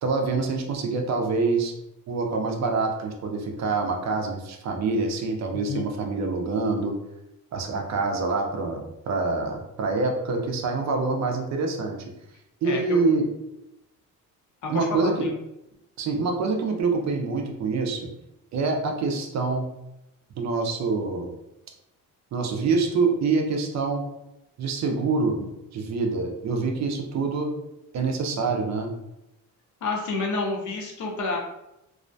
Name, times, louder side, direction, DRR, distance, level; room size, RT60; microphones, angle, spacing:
voice 1, 0.0-1.7 2.1-7.0 7.5-12.0 12.6-13.3 14.7-15.3 16.0-18.1 18.5-19.7 20.4-21.3 22.3-24.0 24.6-25.4 25.7-27.5 27.9-28.9, right 4 dB, 50° right, 3 dB, 0.4 m, -26 dB
voice 2, 5.5-5.9 12.6-13.0 14.6-15.3 29.8-31.4, left 3 dB, 60° left, 0 dB, 0.6 m, -29 dB
2.3 x 2.1 x 2.5 m, 0.88 s
cardioid pair, 145°, 35 cm